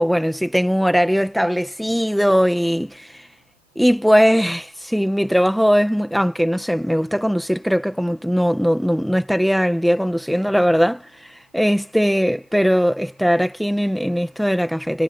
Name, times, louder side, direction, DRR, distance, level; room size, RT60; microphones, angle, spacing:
voice 1, 0.0-3.3 3.7-15.0, equal, ahead, 1.6 m, -19 dB
supercardioid pair, 155°, 39 cm